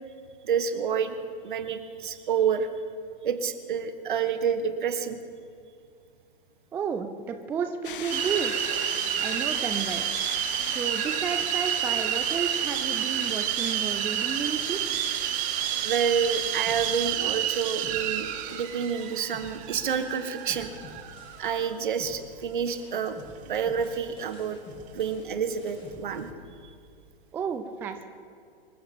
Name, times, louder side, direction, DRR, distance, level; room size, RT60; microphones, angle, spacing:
voice 1, 0.4-1.2 1.4-2.7 3.2-5.2 15.8-20.7 21.4-23.2 23.5-24.6 24.9-26.3, right 7 dB, 60° right, 10 dB, 1.5 m, -28 dB
voice 2, 6.7-8.8 9.2-10.1 10.6-14.8 27.3-28.0, right 6 dB, 5° right, 8 dB, 0.3 m, -32 dB
sound 1, 7.8-16.9, left 8 dB, 65° left, 0.8 m, -40 dB
sound 2, 8.1-21.7, right 11 dB, 25° right, 1.0 m, -29 dB
sound 3, 16.7-21.7 22.0-27.0, left 3 dB, 20° left, 2.5 m, -49 dB
25.5 x 14.0 x 3.7 m, 2.4 s
figure-of-eight pair, 110°, 29 cm